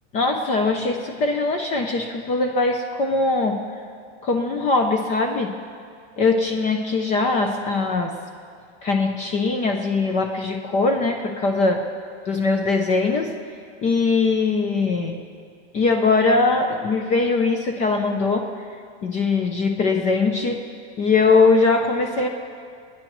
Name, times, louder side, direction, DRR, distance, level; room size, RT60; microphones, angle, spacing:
voice 1, 0.1-3.6 4.2-5.5 6.2-8.2 8.8-11.7 12.3-13.3 13.8-15.2 15.7-18.5 19.0-20.6 21.0-22.3, left 3 dB, 20° left, 4 dB, 0.4 m, -21 dB
27.0 x 9.9 x 3.0 m, 2.2 s
supercardioid pair, 160°, 34 cm